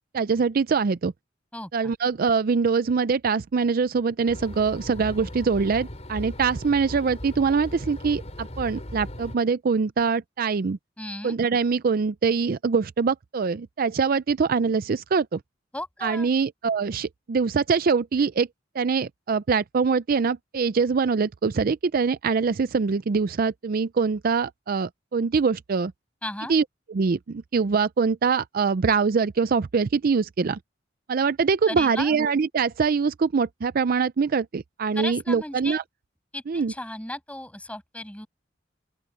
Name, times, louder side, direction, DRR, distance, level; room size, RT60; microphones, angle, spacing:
voice 1, 0.1-1.1 1.7-10.8 11.2-15.4 16.0-18.5 18.8-25.9 26.5-26.6 26.9-30.6 31.1-35.8 36.5-36.7, right 5 dB, 50° right, 0.4 m, -23 dB
voice 2, 1.5-1.9 11.0-11.4 15.7-16.3 26.2-26.5 31.7-32.1 35.0-35.8 36.3-38.3, left 1 dB, 5° left, 6.4 m, -35 dB
sound 1, 4.3-9.4, left 1 dB, 35° left, 4.0 m, -38 dB
open air
head